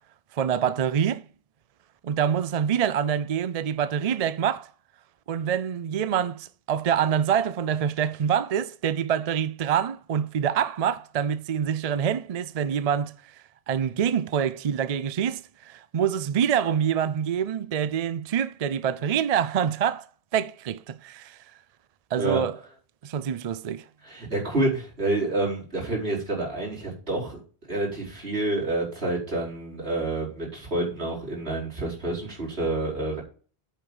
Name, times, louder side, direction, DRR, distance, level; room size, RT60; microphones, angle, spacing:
voice 1, 0.3-1.2 2.0-4.7 5.3-13.1 13.7-20.1 20.3-21.4 22.1-22.5 23.0-23.8, right 8 dB, 50° right, 0.5 m, -26 dB
voice 2, 24.0-27.4 27.7-33.2, right 2 dB, 75° right, 4.8 m, -28 dB
8.3 x 6.1 x 7.1 m
omnidirectional pair, 1.1 m